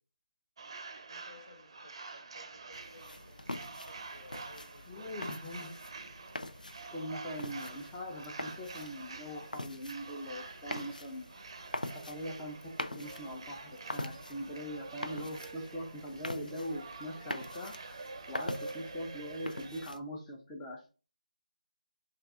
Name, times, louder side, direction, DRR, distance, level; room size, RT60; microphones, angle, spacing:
sound 1, 0.6-19.9, right 3 dB, 35° right, 0.5 m, -47 dB
voice 1, 1.1-5.2, left 3 dB, 65° left, 2 dB, 1.3 m, -58 dB
sound 2, 2.7-20.0, left 1 dB, 85° left, 0.5 m, -44 dB
voice 2, 4.9-5.8 6.9-11.3 12.1-17.7 18.3-20.9, equal, 10° left, -2 dB, 0.5 m, -42 dB
6.5 x 2.3 x 2.4 m, 0.35 s
figure-of-eight pair, 160°, 4 cm